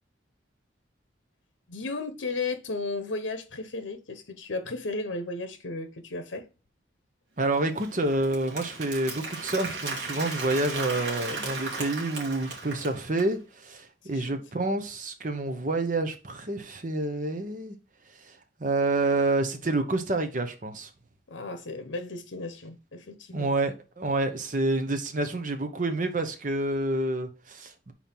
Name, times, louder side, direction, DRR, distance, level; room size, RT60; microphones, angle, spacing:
voice 1, 1.7-6.5 14.0-14.4 21.3-23.5, left 3 dB, 75° left, 0.9 m, -34 dB
voice 2, 7.4-17.8 18.2-20.9 23.3-27.9, right 2 dB, 40° right, 0.9 m, -28 dB
Applause, 7.5-13.3, right 3 dB, 65° right, 2.1 m, -36 dB
5.4 x 4.5 x 4.4 m
head